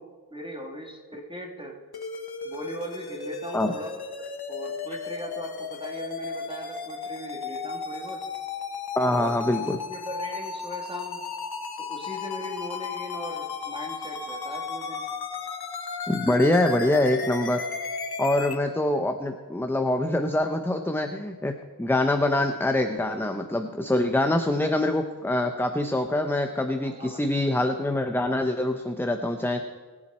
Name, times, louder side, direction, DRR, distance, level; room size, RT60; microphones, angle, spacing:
voice 1, 0.0-1.8 2.4-8.2 9.1-9.3 9.6-11.2 11.8-15.1 26.8-27.2, equal, 15° right, 0 dB, 2.9 m, -39 dB
sound 1, 1.9-18.5, left 5 dB, 80° left, 1.1 m, -35 dB
voice 2, 9.0-9.8 16.1-17.6 18.2-29.6, left 1 dB, 5° left, 6 dB, 0.7 m, -25 dB
22.5 x 7.6 x 4.3 m, 1.4 s
wide cardioid pair, 75°, 37 cm